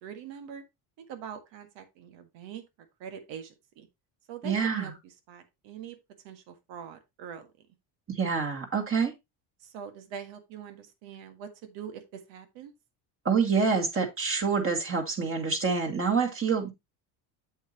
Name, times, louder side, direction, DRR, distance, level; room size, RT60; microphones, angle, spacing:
voice 1, 0.0-0.6 1.1-2.6 3.0-3.9 4.3-6.0 6.2-7.5 9.6-12.7, right 8 dB, 80° right, 1.8 m, -43 dB
voice 2, 4.4-4.9 8.1-9.1 13.2-16.7, right 5 dB, 30° right, 2.1 m, -27 dB
8.0 x 7.6 x 2.9 m
cardioid pair, 125°, 44 cm